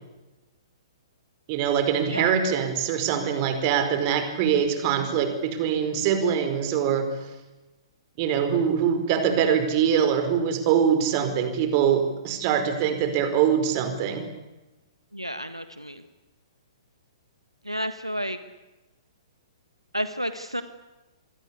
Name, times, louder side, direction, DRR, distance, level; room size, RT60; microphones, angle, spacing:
voice 1, 1.5-7.1 8.2-14.3, right 8 dB, 35° right, 8 dB, 4.8 m, -23 dB
voice 2, 2.0-2.3 15.1-16.0 17.6-18.4 19.9-20.6, equal, 90° right, 10 dB, 1.6 m, -31 dB
27.5 x 22.5 x 8.4 m, 1.0 s
figure-of-eight pair, 115°, 3 cm